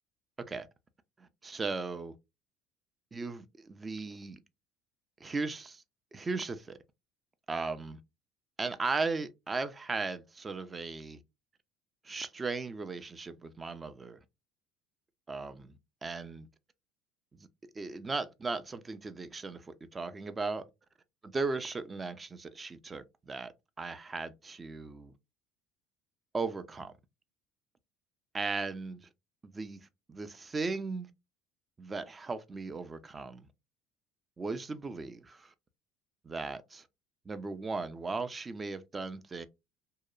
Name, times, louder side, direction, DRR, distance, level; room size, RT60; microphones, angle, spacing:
voice 1, 1.2-2.2 3.1-4.4 5.2-5.8 6.1-6.8 7.5-8.0 8.6-11.2 12.0-14.2 15.3-15.7 16.0-16.5 17.3-17.5 17.7-20.7 21.2-23.5 23.8-25.1 26.3-26.9 28.3-29.1 29.4-31.1 31.8-33.5 34.4-35.5 36.2-36.9 37.3-39.5, right 3 dB, 20° right, 0.4 m, -37 dB
2.8 x 2.0 x 2.3 m
supercardioid pair, 110°, 0 cm